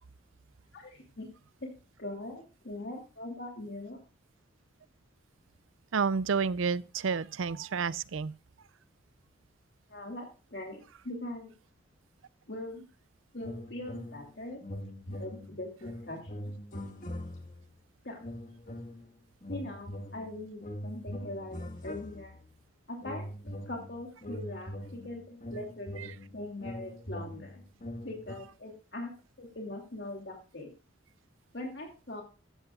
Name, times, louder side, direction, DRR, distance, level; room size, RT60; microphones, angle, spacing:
voice 1, 0.7-1.3 1.6-1.7 2.0-4.0 9.9-11.5 12.5-12.8 13.3-14.6 15.1-16.5 18.0-18.2 19.5-22.4 22.9-27.6 28.0-29.1 29.4-30.7 31.5-32.2, left 1 dB, 60° left, 2.9 m, -41 dB
voice 2, 5.9-8.3 26.0-26.1, right 5 dB, 90° right, 0.5 m, -30 dB
sound 1, 13.4-14.3 14.6-17.7 18.2-19.1 19.4-22.5 23.0-28.3, left 1 dB, 40° left, 1.6 m, -42 dB
14.5 x 13.5 x 2.4 m
head